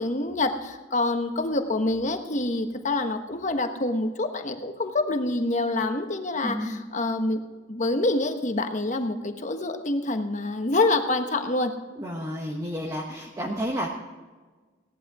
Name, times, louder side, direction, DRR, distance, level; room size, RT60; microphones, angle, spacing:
voice 1, 0.0-7.4 7.7-11.7, left 2 dB, 40° left, 6 dB, 1.2 m, -26 dB
voice 2, 6.3-6.8 12.0-13.9, equal, 20° right, -1 dB, 1.2 m, -31 dB
17.0 x 11.0 x 4.9 m, 1.3 s
head